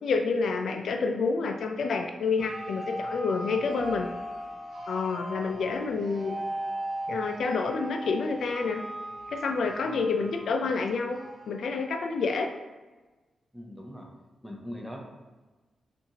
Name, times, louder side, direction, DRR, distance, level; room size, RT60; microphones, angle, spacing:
voice 1, 0.0-4.1 4.9-6.3 7.1-8.8 9.3-11.2 11.5-12.5, left 4 dB, 70° left, 4 dB, 0.3 m, -28 dB
sound 1, 2.4-12.1, right 1 dB, 40° right, 0.7 m, -38 dB
voice 2, 13.5-14.1 14.4-15.0, equal, 5° right, 0 dB, 0.6 m, -41 dB
5.6 x 2.5 x 2.8 m, 1.2 s
wide cardioid pair, 155°, 0 cm